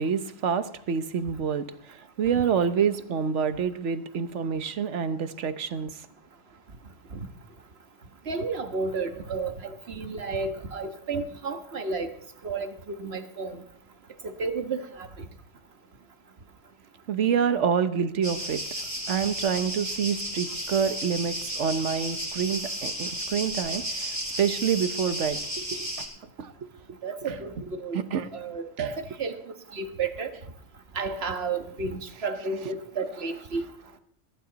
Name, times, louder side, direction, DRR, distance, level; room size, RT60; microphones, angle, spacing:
voice 1, 0.0-6.0 17.1-18.6 19.1-26.1 26.4-26.5 27.9-28.3 28.8-28.9, right 7 dB, 80° right, 11 dB, 1.3 m, -27 dB
voice 2, 8.3-12.1 12.4-13.6 14.2-15.2 27.0-28.0 28.3-29.4 29.7-30.3 30.9-33.7, right 4 dB, 60° right, 7 dB, 1.6 m, -32 dB
sound 1, 18.2-26.1, equal, 15° right, 5.5 m, -33 dB
22.0 x 12.0 x 4.1 m, 0.68 s
omnidirectional pair, 1.2 m